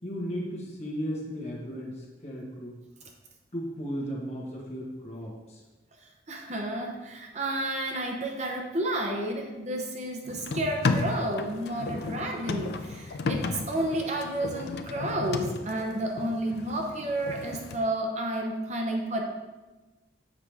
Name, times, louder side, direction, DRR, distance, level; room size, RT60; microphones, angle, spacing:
voice 1, 0.0-2.7 3.5-5.6, equal, 35° left, -3 dB, 1.3 m, -35 dB
voice 2, 6.3-19.2, right 1 dB, 40° right, 1 dB, 0.7 m, -31 dB
sound 1, 10.3-17.8, left 3 dB, 60° left, 0.4 m, -33 dB
7.4 x 4.8 x 3.4 m, 1.2 s
head